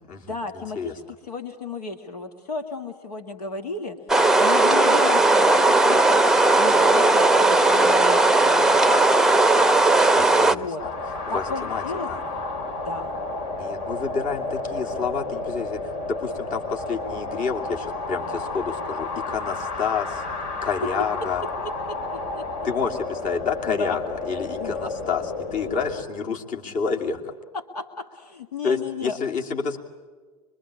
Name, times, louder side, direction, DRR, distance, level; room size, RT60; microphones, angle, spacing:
voice 1, 0.3-4.0 4.4-6.3 6.5-8.9 10.5-10.8 11.3-12.1 12.9-13.1 21.6-22.5 23.7-24.0 24.6-24.9 27.5-29.2, left 3 dB, 80° left, 6 dB, 1.9 m, -33 dB
sound 1, 4.1-10.6, right 2 dB, ahead, 0.8 m, -17 dB
voice 2, 10.1-10.9 11.3-11.8 12.1-12.2 13.6-20.2 20.6-21.4 22.6-25.2 25.5-27.3 28.6-29.8, left 5 dB, 40° left, 2 dB, 2.8 m, -29 dB
sound 2, 10.8-26.1, left 3 dB, 60° left, 4.2 m, -31 dB
25.0 x 23.0 x 8.6 m, 1.5 s
figure-of-eight pair, 90°, 20 cm